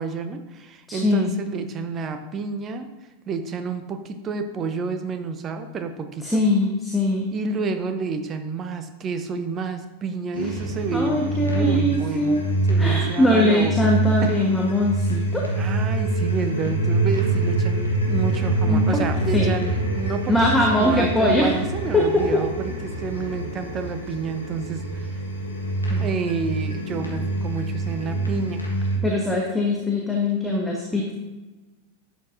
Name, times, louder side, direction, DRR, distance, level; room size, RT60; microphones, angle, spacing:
voice 1, 0.0-2.9 3.3-6.4 7.3-11.1 11.5-12.4 12.7-13.7 14.2-14.4 15.6-25.2 26.0-28.6, right 4 dB, 25° right, 8 dB, 0.9 m, -29 dB
voice 2, 0.9-1.3 6.2-7.3 10.9-12.5 12.8-15.5 18.7-19.0 19.3-19.5 20.3-21.5 21.9-22.4 25.9-26.1 29.0-31.1, left 1 dB, 5° left, -1 dB, 1.3 m, -21 dB
sound 1, 10.3-29.0, right 2 dB, 85° left, 1.7 m, -25 dB
11.5 x 8.2 x 2.6 m, 1.2 s
figure-of-eight pair, 90°, 0 cm